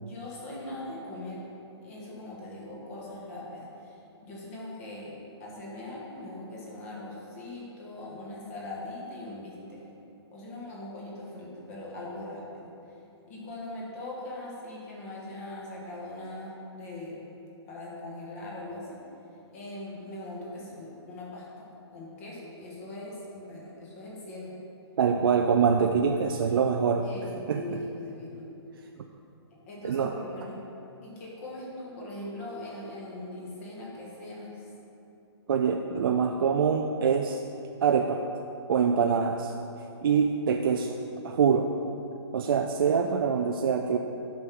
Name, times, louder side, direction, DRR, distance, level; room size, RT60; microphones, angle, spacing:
voice 1, 0.0-1.5 1.8-5.1 5.4-9.8 10.3-12.7 13.3-17.2 17.7-19.0 19.5-24.6 27.0-28.4 29.7-30.6 31.0-34.7, left 1 dB, 30° left, -5 dB, 1.8 m, -41 dB
voice 2, 25.0-27.0 27.5-27.6 29.8-30.1 35.5-37.4 37.8-38.2 38.7-39.5 40.0-41.0 41.2-41.7 42.3-44.0, right 6 dB, 55° right, 3 dB, 0.4 m, -24 dB
9.6 x 6.1 x 3.7 m, 2.9 s
hypercardioid pair, 160°, 14 cm